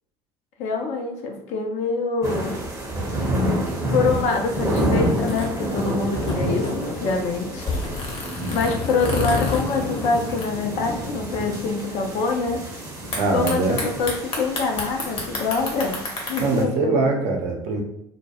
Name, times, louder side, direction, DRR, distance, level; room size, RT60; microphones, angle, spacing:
voice 1, 0.6-2.6 3.9-7.7 8.5-12.7 13.3-16.0 16.3-17.1, left 4 dB, 55° left, 2 dB, 0.5 m, -25 dB
sound 1, 2.2-16.6, equal, 25° right, 0.8 m, -29 dB
sound 2, 3.2-11.1 11.4-11.5 11.7-12.1 13.1-16.4, left 3 dB, 40° left, 0.9 m, -30 dB
voice 2, 13.2-13.8 16.4-17.8, right 3 dB, 55° right, 1 dB, 0.6 m, -22 dB
2.2 x 2.2 x 2.8 m, 0.75 s
figure-of-eight pair, 65°, 14 cm